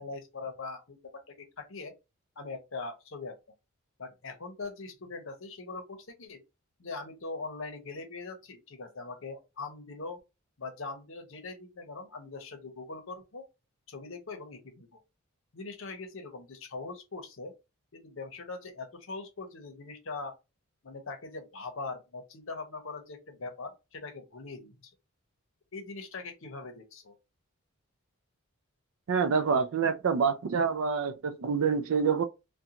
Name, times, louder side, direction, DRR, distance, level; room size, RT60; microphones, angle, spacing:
voice 1, 0.0-1.9 2.4-3.4 4.0-6.4 6.8-10.2 10.6-13.5 13.9-14.9 15.5-17.5 17.9-20.4 20.8-24.7 25.7-27.1, left 3 dB, 60° left, 0.7 m, -41 dB
voice 2, 29.1-32.2, right 6 dB, 65° right, 0.4 m, -27 dB
2.5 x 2.2 x 2.8 m
head